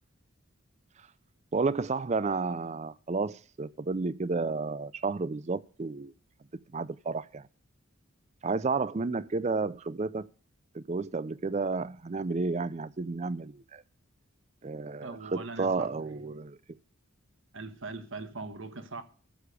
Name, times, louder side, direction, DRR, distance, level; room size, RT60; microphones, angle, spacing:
voice 1, 1.5-6.1 6.7-7.4 8.4-10.3 10.7-13.8 14.6-16.6, right 3 dB, 30° right, 0.5 m, -31 dB
voice 2, 15.0-16.4 17.5-19.0, right 3 dB, 65° right, 1.4 m, -41 dB
14.5 x 6.8 x 5.0 m
head